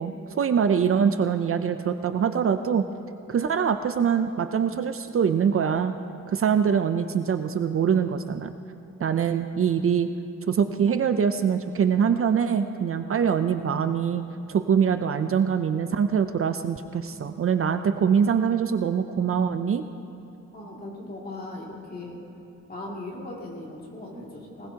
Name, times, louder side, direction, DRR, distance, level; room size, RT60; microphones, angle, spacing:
voice 1, 0.0-2.8 3.3-5.9 6.3-8.5 9.0-10.1 10.5-14.2 14.5-19.8, right 7 dB, 50° right, 9 dB, 0.5 m, -24 dB
voice 2, 20.5-22.2 22.7-24.7, left 2 dB, 30° left, -3 dB, 2.5 m, -38 dB
20.5 x 19.0 x 2.9 m, 2.8 s
wide cardioid pair, 160°, 29 cm